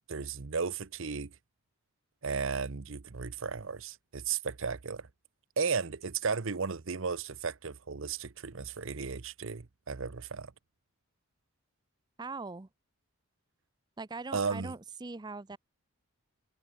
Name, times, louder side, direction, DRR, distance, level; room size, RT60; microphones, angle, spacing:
voice 1, 0.1-1.3 2.2-5.1 5.6-10.5 14.3-14.7, right 5 dB, 60° right, 0.8 m, -34 dB
voice 2, 12.2-12.7 14.0-15.6, right 3 dB, 20° right, 0.5 m, -41 dB
head